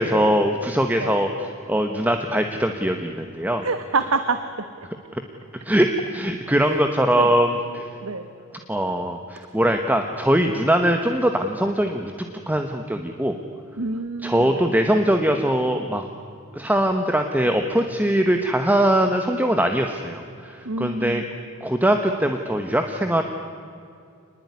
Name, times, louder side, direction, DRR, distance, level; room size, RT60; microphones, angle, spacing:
voice 1, 0.0-3.7 5.1-5.2 5.6-7.9 8.7-12.1 12.5-13.4 14.2-16.0 16.5-21.2 21.6-23.2, right 1 dB, 10° right, 5 dB, 1.3 m, -21 dB
voice 2, 3.6-4.7 6.6-6.8 7.2-7.3 8.0-8.3 13.8-14.7 20.6-21.2, right 3 dB, 90° right, 9 dB, 1.4 m, -26 dB
27.5 x 20.5 x 9.7 m, 2.4 s
head